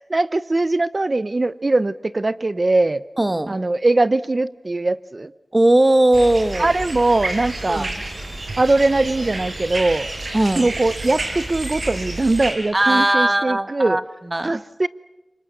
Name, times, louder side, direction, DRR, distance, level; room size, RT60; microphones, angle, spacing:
voice 1, 0.1-3.0 3.5-5.3 6.6-7.9 8.6-10.1 10.5-14.0 14.4-14.9, right 2 dB, 45° right, 16 dB, 0.9 m, -21 dB
voice 2, 3.2-3.6 5.5-6.7 7.7-7.9 10.3-10.7 12.7-14.0 14.3-14.5, right 1 dB, 30° right, 11 dB, 1.5 m, -18 dB
sound 1, 6.1-12.5, right 2 dB, 70° right, 6.4 m, -30 dB
28.0 x 25.0 x 6.9 m, 1.0 s
wide cardioid pair, 60°, 0 cm